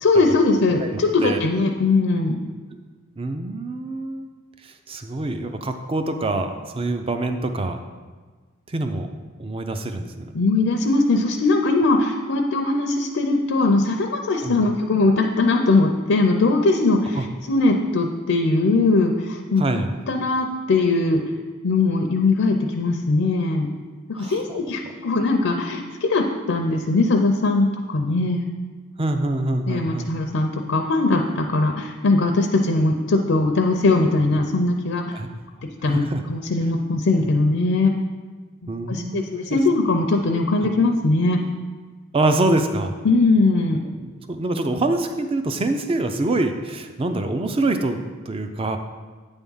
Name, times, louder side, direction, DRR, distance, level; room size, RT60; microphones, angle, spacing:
voice 1, 0.0-2.4 10.3-19.6 20.1-21.2 21.6-23.7 24.1-28.4 29.7-35.2 35.8-37.9 38.6-41.4 43.0-43.8, left 3 dB, 65° left, 3 dB, 0.5 m, -20 dB
voice 2, 3.2-4.2 4.6-7.8 8.7-9.1 9.4-10.3 14.4-14.6 17.1-17.2 19.6-19.9 24.2-24.6 29.0-30.1 35.1-35.3 35.8-36.2 37.2-37.3 38.7-39.2 39.5-39.6 42.1-42.9 44.0-48.0 48.3-48.8, right 2 dB, 25° right, 7 dB, 0.4 m, -25 dB
8.9 x 3.5 x 5.5 m, 1.4 s
head